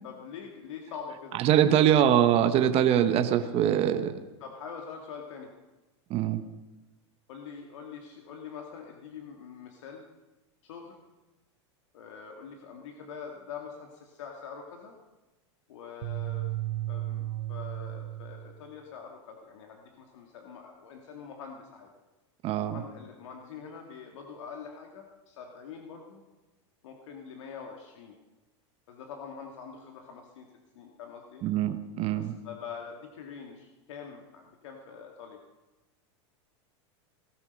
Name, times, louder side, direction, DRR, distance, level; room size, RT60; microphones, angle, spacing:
voice 1, 0.0-1.4 1.7-2.0 4.4-5.5 7.3-10.1 10.6-11.0 11.9-15.0 15.7-16.5 16.9-21.9 22.7-26.2 26.8-28.2 28.9-30.5 30.7-31.4 32.1-35.4, left 6 dB, 80° left, 2 dB, 2.1 m, -44 dB
voice 2, 1.4-4.2 6.1-6.4 22.4-22.7 31.4-32.3, right 10 dB, 40° right, 8 dB, 1.1 m, -23 dB
sound 1, 16.0-18.5, right 16 dB, 70° right, 1.5 m, -34 dB
18.5 x 12.5 x 5.3 m, 1.1 s
supercardioid pair, 125°, 15 cm